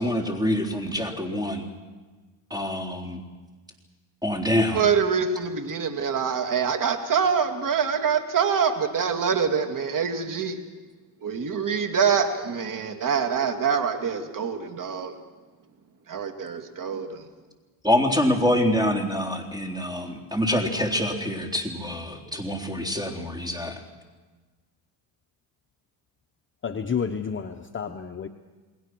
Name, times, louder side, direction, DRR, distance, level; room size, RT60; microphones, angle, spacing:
voice 1, 0.0-1.6 2.5-3.2 4.2-4.8 17.8-23.8, left 1 dB, 10° right, 2 dB, 3.8 m, -25 dB
voice 2, 4.7-10.6 11.2-15.1 16.1-17.3, right 6 dB, 40° right, 6 dB, 2.8 m, -25 dB
voice 3, 26.6-28.3, left 6 dB, 25° left, 6 dB, 1.0 m, -30 dB
29.5 x 20.0 x 6.2 m, 1.3 s
cardioid pair, 100°, 47 cm